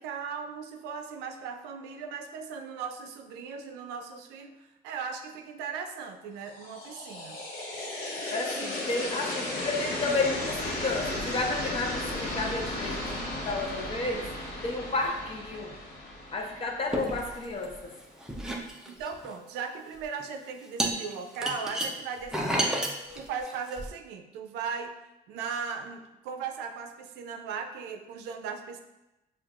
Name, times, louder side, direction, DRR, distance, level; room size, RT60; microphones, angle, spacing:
voice 1, 0.0-4.6 4.8-7.4 8.2-8.3 8.6-8.7 18.9-22.8 23.1-24.9 25.3-28.8, right 6 dB, 85° right, 6 dB, 0.4 m, -38 dB
sound 1, 6.5-17.5, left 1 dB, 65° left, 0.9 m, -35 dB
voice 2, 8.3-13.0 13.4-14.3 14.6-15.7 16.3-17.9, left 3 dB, 35° left, 1 dB, 0.7 m, -31 dB
sound 2, 16.9-17.9 18.2-19.3 20.0-20.2 20.8-23.9, right 1 dB, 5° right, 0.5 m, -31 dB
5.6 x 2.4 x 2.4 m, 0.96 s
cardioid pair, 110°, 17 cm